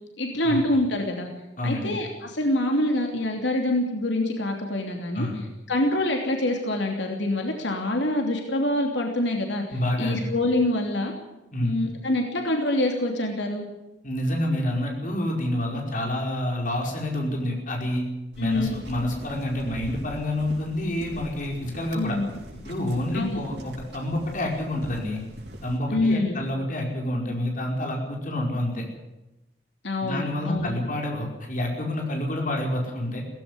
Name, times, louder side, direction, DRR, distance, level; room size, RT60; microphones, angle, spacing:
voice 1, 0.2-1.3 1.6-5.3 5.7-9.6 10.0-11.1 11.6-13.7 18.4-18.8 21.9-22.3 23.1-23.4 25.9-26.4 29.8-30.7, left 1 dB, 90° left, 2 dB, 3.0 m, -25 dB
voice 2, 1.6-1.9 5.1-5.4 9.7-10.3 11.5-11.8 14.0-18.0 18.4-22.2 22.6-25.2 25.6-28.8 30.0-33.2, left 1 dB, 45° left, 1 dB, 5.1 m, -28 dB
sound 1, 18.3-25.8, equal, 65° right, 5.3 m, -42 dB
17.0 x 15.5 x 9.8 m, 0.96 s
head